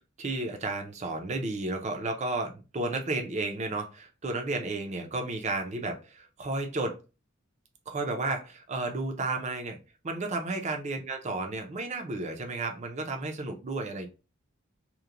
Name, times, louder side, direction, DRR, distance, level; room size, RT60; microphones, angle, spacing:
voice 1, 0.2-7.0 7.9-9.8 10.0-14.1, right 2 dB, 35° right, 0.5 m, -32 dB
3.0 x 2.1 x 2.4 m
head